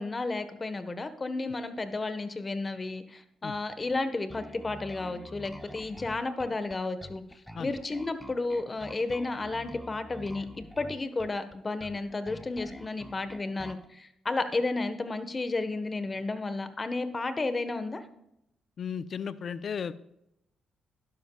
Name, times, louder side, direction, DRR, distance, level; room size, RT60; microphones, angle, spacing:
voice 1, 0.0-7.2 7.6-10.4 10.8-18.0, left 3 dB, 30° left, 10 dB, 1.3 m, -32 dB
Bass guitar, 4.3-13.9, equal, 5° left, 1.0 m, -46 dB
voice 2, 18.8-19.9, left 7 dB, 55° left, 14 dB, 0.6 m, -34 dB
12.5 x 11.0 x 2.4 m, 0.81 s
cardioid pair, 75°, 0 cm